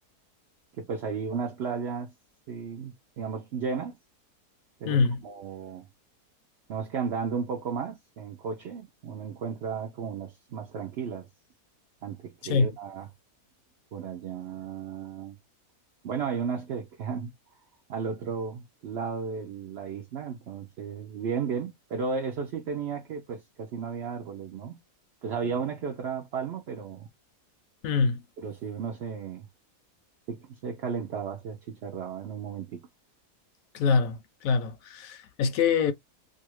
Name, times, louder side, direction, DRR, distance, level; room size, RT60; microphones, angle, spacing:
voice 1, 0.7-2.1 2.5-4.0 4.8-5.9 6.7-11.3 12.0-13.1 13.9-15.3 16.0-17.3 17.9-24.8 25.2-27.1 28.4-29.5 30.3-32.9, right 6 dB, 70° right, 0.6 m, -34 dB
voice 2, 4.9-5.2 12.4-12.7 27.8-28.2 33.7-35.9, left 5 dB, 70° left, 0.9 m, -25 dB
2.7 x 2.5 x 3.0 m
omnidirectional pair, 1.7 m